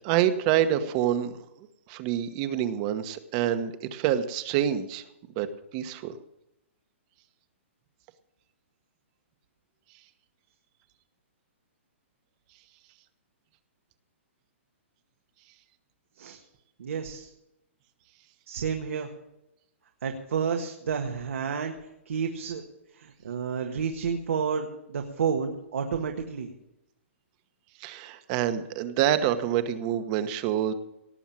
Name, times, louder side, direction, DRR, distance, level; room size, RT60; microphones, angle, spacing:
voice 1, 0.0-1.4 1.9-5.0 5.4-5.5 5.7-6.2 27.8-30.7, right 10 dB, 30° right, 11 dB, 1.1 m, -27 dB
voice 2, 16.8-17.3 18.5-19.1 20.0-21.8 22.0-22.6 22.9-26.5, right 6 dB, 80° right, 3 dB, 1.6 m, -30 dB
18.0 x 7.1 x 7.4 m, 0.87 s
hypercardioid pair, 160°, 7 cm